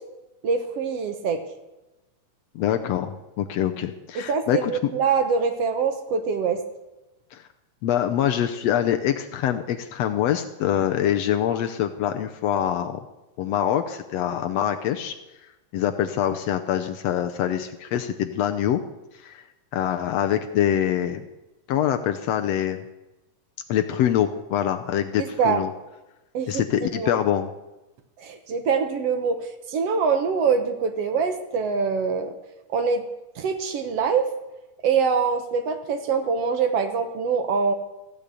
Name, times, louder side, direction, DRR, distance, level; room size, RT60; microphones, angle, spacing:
voice 1, 0.4-1.4 4.2-6.6 25.2-25.6 26.3-26.6 27.0-27.1 28.2-32.3 32.7-33.0 33.4-34.3 34.8-37.7, right 5 dB, 60° right, 7 dB, 1.9 m, -24 dB
voice 2, 2.5-4.9 7.3-7.4 7.8-13.0 13.4-15.1 15.7-18.8 19.2-19.4 19.7-21.2 21.7-22.8 23.7-25.7 26.5-27.5, left 10 dB, 75° left, 8 dB, 1.6 m, -24 dB
15.0 x 9.0 x 8.3 m, 1.0 s
omnidirectional pair, 3.6 m